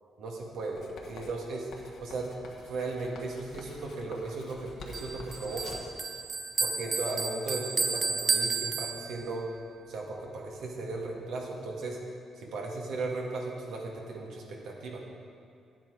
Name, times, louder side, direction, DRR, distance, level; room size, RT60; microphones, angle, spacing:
voice 1, 0.2-2.3 2.7-5.9 6.6-9.4 9.9-12.0 12.4-15.0, right 3 dB, 75° right, -1 dB, 1.8 m, -36 dB
Writing, 0.8-6.0, left 3 dB, 70° left, 1.4 m, -48 dB
Bell, 4.9-9.4, right 4 dB, 35° right, 0.7 m, -32 dB
10.5 x 8.9 x 4.8 m, 2.4 s
cardioid pair, 90°, 0 cm